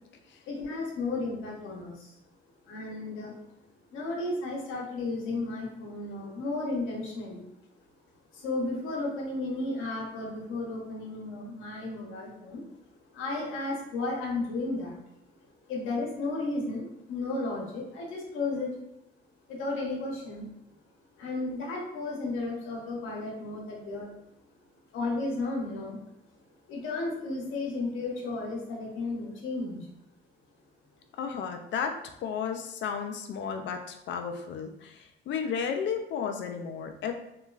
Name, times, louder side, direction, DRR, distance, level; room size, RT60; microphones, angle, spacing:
voice 1, 0.5-2.1 2.6-3.3 3.9-7.5 8.3-12.6 13.1-15.0 15.7-18.7 19.5-20.5 21.2-24.1 24.9-26.0 26.7-29.9, left 2 dB, 85° left, -2 dB, 0.8 m, -33 dB
voice 2, 31.2-37.1, left 6 dB, 65° left, 6 dB, 0.4 m, -33 dB
2.9 x 2.3 x 2.3 m, 0.84 s
cardioid pair, 90°, 20 cm